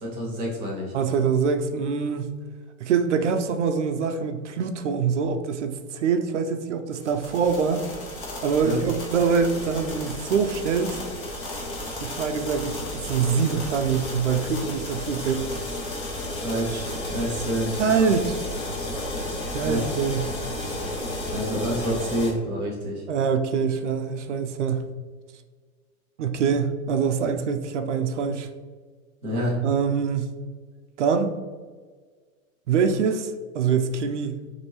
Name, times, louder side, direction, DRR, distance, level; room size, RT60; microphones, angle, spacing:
voice 1, 0.0-0.9 8.6-8.8 16.4-18.1 19.6-19.8 21.3-23.0 29.2-29.6, equal, 5° left, -22 dB, 0.4 m, -28 dB
voice 2, 0.9-2.3 2.8-7.8 8.4-11.0 12.0-15.5 17.8-18.4 19.5-20.3 23.1-24.9 26.2-28.5 29.6-30.3 31.0-31.4 32.7-34.4, right 6 dB, 55° right, 7 dB, 0.5 m, -24 dB
sound 1, 6.9-22.3, left 1 dB, 35° left, 1.1 m, -33 dB
5.8 x 2.7 x 3.0 m, 1.5 s
hypercardioid pair, 175°, 43 cm